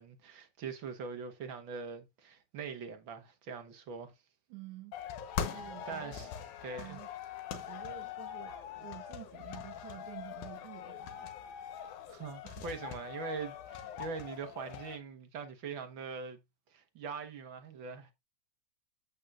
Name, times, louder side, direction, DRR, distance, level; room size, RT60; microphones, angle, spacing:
voice 1, 0.0-4.1 5.5-6.3 6.6-7.0 12.1-16.4 16.7-18.1, right 5 dB, 50° right, 1.7 m, -42 dB
voice 2, 4.5-5.0 5.5-6.3 6.8-7.1 7.5-11.3 12.1-12.6, right 13 dB, 80° right, 2.4 m, -50 dB
sound 1, 4.9-15.0, left 8 dB, 80° left, 2.6 m, -42 dB
8.9 x 8.5 x 2.5 m
omnidirectional pair, 3.4 m